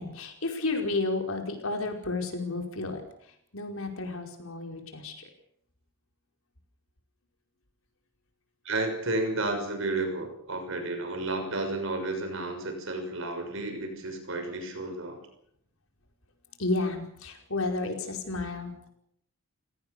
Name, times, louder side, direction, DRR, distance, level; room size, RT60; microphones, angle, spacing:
voice 1, 0.0-3.0 3.5-5.3 16.6-18.9, left 3 dB, 70° left, 4 dB, 5.0 m, -32 dB
voice 2, 8.6-15.2, right 2 dB, 65° right, 6 dB, 6.3 m, -32 dB
29.0 x 18.0 x 6.9 m, 0.70 s
head